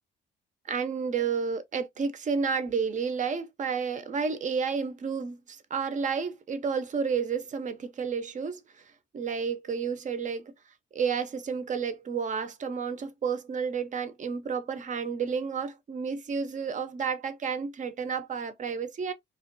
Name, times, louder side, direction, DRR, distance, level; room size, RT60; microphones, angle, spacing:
voice 1, 0.7-8.6 9.1-10.5 10.9-19.1, right 6 dB, 40° right, 0.5 m, -31 dB
2.4 x 2.1 x 2.5 m
cardioid pair, 90°, 20 cm